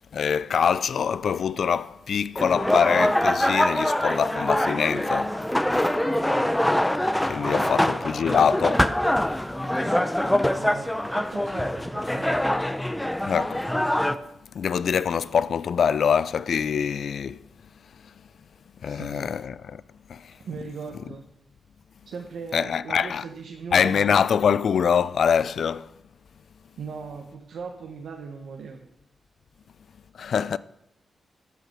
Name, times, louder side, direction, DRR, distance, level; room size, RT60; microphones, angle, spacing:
voice 1, 0.0-5.3 7.3-8.9 13.2-13.6 14.6-17.4 18.8-19.8 20.1-20.2 22.5-23.2 23.7-25.9 30.2-30.6, left 7 dB, 70° left, 0.3 m, -24 dB
sound 1, 2.4-14.2, left 1 dB, 10° left, 0.5 m, -24 dB
voice 2, 7.4-8.0 10.6-12.4 18.8-19.3 20.4-21.2 22.1-24.6 26.8-28.8, right 5 dB, 80° right, 1.0 m, -39 dB
13.0 x 5.8 x 5.8 m
cardioid pair, 85°, 0 cm